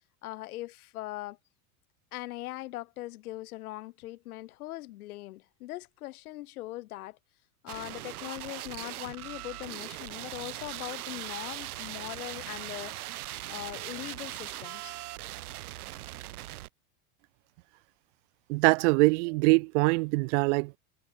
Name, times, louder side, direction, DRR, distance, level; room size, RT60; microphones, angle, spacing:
voice 1, 0.2-1.4 2.1-7.2 7.6-13.0 13.5-15.0, left 17 dB, 75° left, 7.2 m, -40 dB
sound 1, 7.7-16.7, right 16 dB, 85° right, 3.1 m, -40 dB
voice 2, 18.5-20.8, right 28 dB, 55° right, 0.8 m, -23 dB
supercardioid pair, 145°, 43 cm